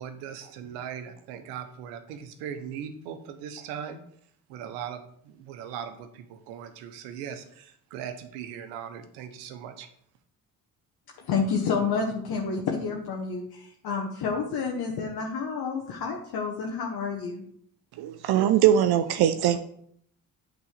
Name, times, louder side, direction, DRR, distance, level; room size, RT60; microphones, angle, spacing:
voice 1, 0.0-4.0 4.5-9.9, right 8 dB, 80° right, 1.0 m, -39 dB
voice 2, 11.2-17.4, left 5 dB, 60° left, 1.3 m, -29 dB
voice 3, 18.0-19.6, right 10 dB, 65° right, 0.7 m, -21 dB
8.2 x 4.0 x 6.6 m
hypercardioid pair, 45°, 42 cm